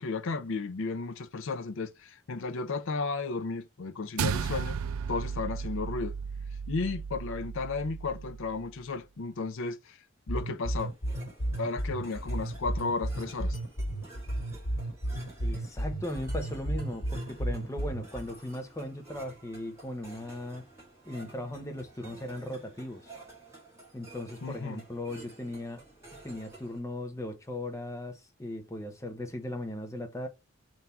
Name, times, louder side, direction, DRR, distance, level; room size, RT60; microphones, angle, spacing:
voice 1, 0.0-4.8 5.1-6.1 6.7-10.0 10.3-10.9 11.6-13.6 24.4-24.8, left 3 dB, 65° left, 0.5 m, -34 dB
sound 1, 4.2-8.7, right 6 dB, 80° right, 0.4 m, -35 dB
sound 2, 10.3-18.3, right 1 dB, 80° left, 1.5 m, -33 dB
sound 3, 10.8-26.8, right 2 dB, 15° right, 1.8 m, -52 dB
voice 2, 15.4-20.7 21.1-23.1 23.9-25.8 26.2-30.3, left 1 dB, 15° left, 0.8 m, -38 dB
3.5 x 2.7 x 4.1 m
head